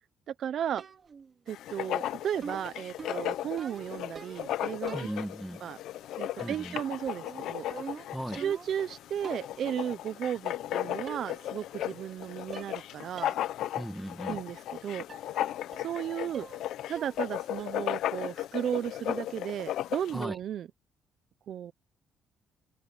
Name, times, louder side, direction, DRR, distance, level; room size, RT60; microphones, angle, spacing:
voice 1, 0.3-0.8 1.5-5.1 5.6-5.8 6.2-7.6 8.4-13.3 14.3-15.0 15.8-16.5 16.9-20.7 21.5-21.7, right 9 dB, 60° right, 0.8 m, -34 dB
sound 1, 0.8-1.3 2.4-4.6 4.9-5.5 6.4-6.8 7.1-8.9 9.2-9.6 10.6-10.7 11.1-11.5 11.8-12.2 12.5-12.9 13.2-13.4 13.8-13.9 15.1-15.3 15.7-16.0 16.3-16.7 17.0-17.3 17.6-17.9, right 5 dB, 35° right, 3.0 m, -45 dB
Writing, 1.5-20.3, left 13 dB, 80° left, 0.8 m, -36 dB
voice 2, 4.9-5.6 6.4-6.8 8.1-8.4 13.8-14.4 20.1-20.4, equal, 5° right, 2.1 m, -37 dB
open air
cardioid pair, 130°, 0 cm